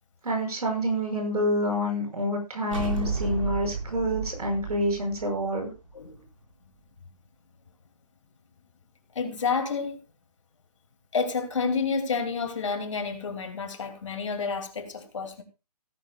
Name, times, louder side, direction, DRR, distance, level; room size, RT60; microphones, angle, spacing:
voice 1, 0.2-5.7, equal, 65° right, 6.3 m, -27 dB
sound 1, 2.7-6.1, right 5 dB, 50° right, 5.2 m, -32 dB
voice 2, 9.1-10.0 11.1-15.4, left 5 dB, 50° left, 2.6 m, -29 dB
17.5 x 11.0 x 2.4 m
hypercardioid pair, 165°, 20 cm